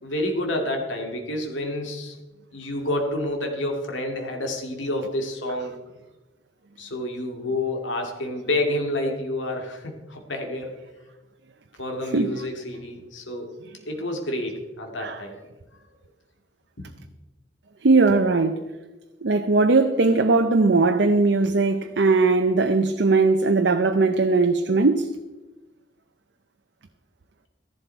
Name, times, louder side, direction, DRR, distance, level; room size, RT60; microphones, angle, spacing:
voice 1, 0.0-2.2 2.5-5.8 6.8-10.7 11.8-13.5 13.9-15.5 16.8-16.9, left 1 dB, 85° left, 2.3 m, -29 dB
voice 2, 12.0-12.5 15.0-15.2 17.8-18.5 19.2-25.1, right 3 dB, 70° right, 0.7 m, -19 dB
14.0 x 11.5 x 4.5 m
head